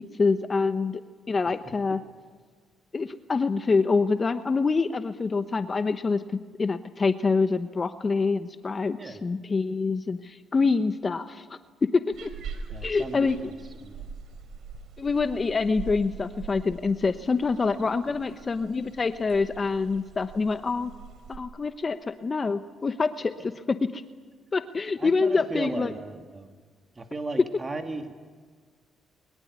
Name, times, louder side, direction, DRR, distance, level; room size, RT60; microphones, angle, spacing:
voice 1, 0.2-1.0 1.3-2.0 2.9-6.2 6.6-12.3 12.8-13.5 15.0-20.9 21.3-24.0 24.5-25.9, left 4 dB, 35° left, 10 dB, 1.0 m, -26 dB
sound 1, 12.1-21.4, right 5 dB, 75° right, 4.1 m, -43 dB
voice 2, 12.7-13.6 13.8-14.1 25.0-26.5 26.9-28.1, right 3 dB, 25° right, 6 dB, 2.3 m, -36 dB
23.0 x 21.0 x 9.6 m, 1.5 s
cardioid pair, 90°, 0 cm